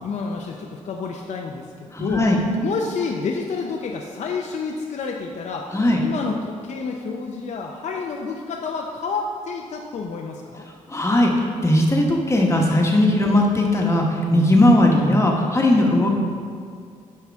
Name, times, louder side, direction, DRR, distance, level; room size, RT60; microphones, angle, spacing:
voice 1, 0.0-2.3 2.6-5.7 6.0-10.7 13.1-13.3, left 4 dB, 65° left, 1 dB, 0.6 m, -29 dB
voice 2, 1.9-2.4 5.7-6.0 10.9-11.3 11.6-14.0 14.3-16.1, left 1 dB, 20° left, 0 dB, 1.2 m, -18 dB
9.2 x 5.5 x 3.5 m, 2.3 s
cardioid pair, 100°, 13 cm